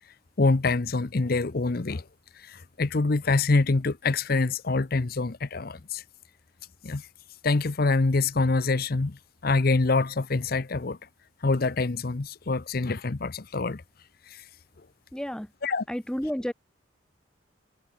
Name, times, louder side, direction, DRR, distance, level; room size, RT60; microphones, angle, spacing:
voice 1, 0.4-2.0 2.4-6.0 6.8-7.0 7.4-11.0 11.4-13.8 14.3-14.4 15.6-15.8, left 3 dB, 50° left, 0.7 m, -25 dB
voice 2, 15.1-15.5 15.9-16.5, equal, 5° left, 0.5 m, -31 dB
head